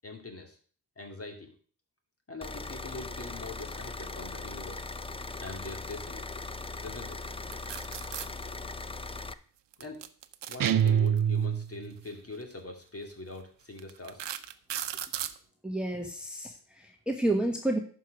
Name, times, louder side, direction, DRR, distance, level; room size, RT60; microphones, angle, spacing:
voice 1, 0.0-0.6 1.0-1.5 2.3-4.9 5.4-6.2 6.8-7.2 9.8-10.0 10.5-14.3, left 2 dB, 35° left, 4 dB, 2.3 m, -43 dB
sound 1, 2.4-9.3, left 3 dB, 15° left, 0.5 m, -39 dB
sound 2, 7.5-8.3 9.7-11.2 12.3-12.5 13.1-13.2 13.8-15.4, right 10 dB, 85° right, 0.7 m, -37 dB
sound 3, 10.6-12.0, right 8 dB, 55° right, 0.6 m, -25 dB
voice 2, 15.6-17.8, right 1 dB, ahead, 3 dB, 1.1 m, -30 dB
11.0 x 4.8 x 6.4 m, 0.43 s
wide cardioid pair, 100°, 41 cm